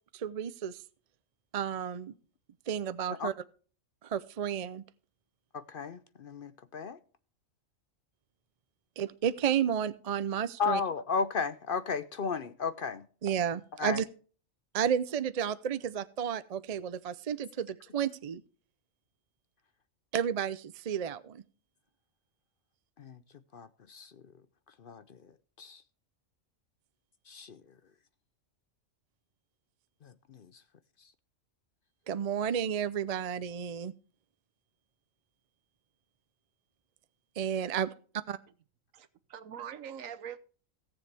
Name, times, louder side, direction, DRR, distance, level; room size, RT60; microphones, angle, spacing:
voice 1, 0.1-0.8 1.5-2.1 2.7-3.3 4.0-4.8 9.0-10.8 13.2-14.0 14.7-18.4 20.1-21.4 32.1-33.9 37.4-37.9 38.3-38.4, right 8 dB, 55° right, 0.4 m, -32 dB
voice 2, 5.5-7.0 10.6-13.1 13.8-14.0 23.0-23.2 23.5-24.1 24.8-25.2 25.6-25.8 27.3-27.6 30.0-30.5, left 5 dB, 55° left, 0.7 m, -34 dB
voice 3, 39.0-40.4, right 8 dB, 85° right, 1.3 m, -43 dB
17.0 x 7.2 x 3.3 m
omnidirectional pair, 1.3 m